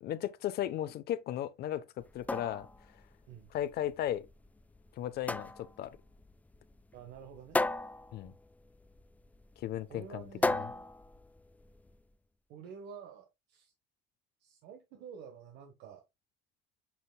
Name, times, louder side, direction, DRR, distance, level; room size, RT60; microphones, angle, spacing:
voice 1, 0.0-2.7 3.5-4.3 5.0-5.9 8.1-8.3 9.6-10.7, left 11 dB, 70° left, 0.8 m, -36 dB
sound 1, 2.0-12.0, left 2 dB, 10° left, 0.3 m, -37 dB
voice 2, 6.9-7.6 9.9-10.9 12.5-13.7 14.4-16.0, right 7 dB, 90° right, 1.3 m, -49 dB
8.2 x 5.9 x 2.2 m
cardioid pair, 110°, 17 cm